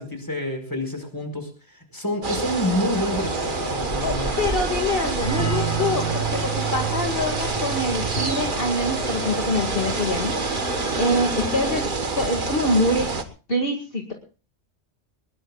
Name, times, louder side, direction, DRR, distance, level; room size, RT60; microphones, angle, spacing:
voice 1, 0.0-1.5 1.9-4.3, left 1 dB, 15° left, 6 dB, 4.8 m, -27 dB
sound 1, 2.2-13.2, right 3 dB, 40° right, 1.6 m, -27 dB
sound 2, 2.9-11.8, equal, 65° right, 4.8 m, -35 dB
voice 2, 4.0-10.3 11.0-13.1 13.5-14.1, left 1 dB, 45° left, 2 dB, 2.3 m, -25 dB
sound 3, 5.2-10.7, right 8 dB, 80° left, 2.8 m, -32 dB
21.5 x 21.0 x 2.4 m, 0.36 s
omnidirectional pair, 1.3 m